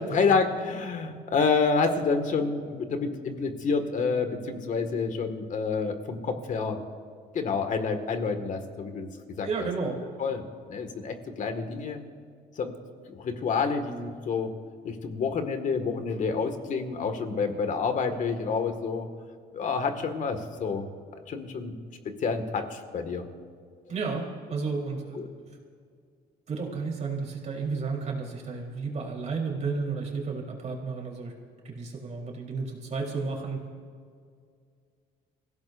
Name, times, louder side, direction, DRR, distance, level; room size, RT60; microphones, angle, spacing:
voice 1, 0.0-6.8 7.3-9.1 9.4-9.7 10.2-12.0 12.6-12.7 13.1-14.5 14.8-19.1 19.5-20.9 21.3-21.7 22.2-23.3 25.1-25.3, left 5 dB, 50° left, 7 dB, 1.9 m, -28 dB
voice 2, 9.4-10.0 23.9-25.3 26.5-31.3 31.6-33.6, right 4 dB, 40° right, -1 dB, 3.8 m, -32 dB
27.0 x 16.5 x 2.6 m, 2.2 s
cardioid pair, 110°, 17 cm